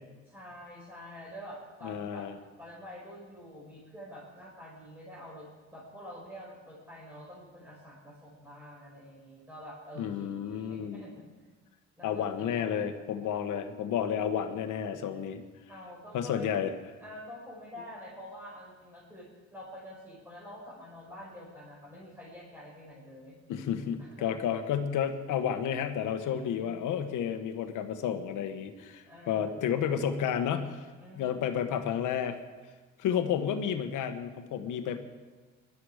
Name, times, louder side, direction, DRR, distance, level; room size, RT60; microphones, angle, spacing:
voice 1, 0.3-2.3 2.6-11.2 12.0-12.9 15.7-16.5 17.0-23.4 24.0-24.3 26.2-26.8 29.0-30.2 31.0-31.8, equal, 5° right, -6 dB, 5.1 m, -47 dB
voice 2, 1.8-2.3 10.0-11.0 12.0-15.4 16.1-16.7 23.5-30.9 31.1-32.4 33.0-35.0, left 8 dB, 85° left, 8 dB, 1.2 m, -31 dB
19.0 x 12.0 x 4.9 m, 1.3 s
cardioid pair, 90°, 30 cm